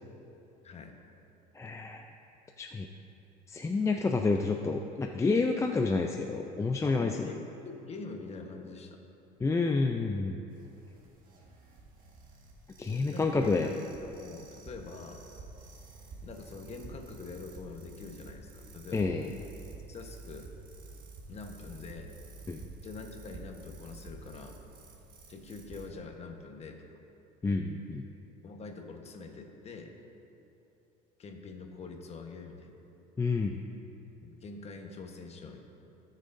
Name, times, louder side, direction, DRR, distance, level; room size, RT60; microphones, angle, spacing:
voice 1, 0.6-1.0 6.8-9.0 13.1-15.2 16.2-19.4 19.9-20.5 21.3-22.1 22.8-24.6 25.3-26.9 28.4-29.9 31.2-32.7 34.2-35.6, left 4 dB, 35° left, 3 dB, 1.2 m, -45 dB
voice 2, 1.6-2.1 2.6-2.9 3.5-7.3 9.4-10.4 12.8-13.7 18.9-19.3 22.5-22.6 27.4-28.1 33.2-33.6, left 3 dB, 15° left, 3 dB, 0.4 m, -29 dB
sound 1, 10.5-25.9, right 3 dB, 50° right, 1.6 m, -50 dB
17.5 x 6.5 x 2.6 m, 2.8 s
supercardioid pair, 100°, 19 cm